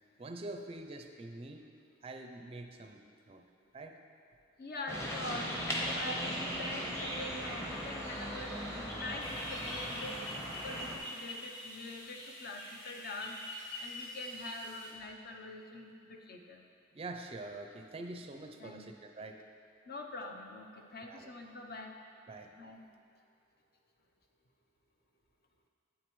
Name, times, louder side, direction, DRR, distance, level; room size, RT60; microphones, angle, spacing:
voice 1, 0.2-1.7 2.0-3.4 3.7-4.0 16.9-19.4 21.1-21.3 22.3-22.5, right 2 dB, 30° right, 5 dB, 0.4 m, -45 dB
voice 2, 4.6-16.6 18.6-18.9 19.9-22.0 22.6-22.9, left 2 dB, 50° left, 2 dB, 0.7 m, -45 dB
sound 1, 4.9-11.0, equal, 15° left, 0.9 m, -38 dB
sound 2, 9.2-14.9, left 1 dB, 80° left, 1.4 m, -45 dB
9.1 x 8.5 x 3.1 m, 2.4 s
head